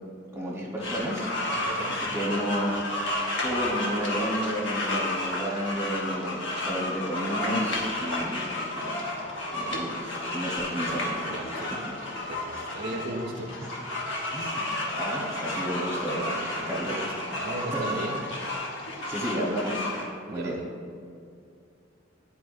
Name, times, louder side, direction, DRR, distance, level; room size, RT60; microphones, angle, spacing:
voice 1, 0.3-2.7 3.4-9.0 9.5-11.2 11.7-11.8 12.5-12.6 14.3-14.6 15.0-17.0 17.7-17.8 19.1-19.9 20.3-20.6, right 1 dB, 15° right, -4 dB, 1.1 m, -32 dB
sound 1, 0.8-20.0, left 1 dB, 75° left, 1.1 m, -32 dB
voice 2, 1.6-2.0 3.4-3.7 9.6-9.8 11.3-11.7 12.3-13.5 16.3-16.5 16.8-17.1 17.4-18.3 20.3-20.6, right 1 dB, 50° right, 3 dB, 0.5 m, -36 dB
9.9 x 4.7 x 2.6 m, 2.4 s
head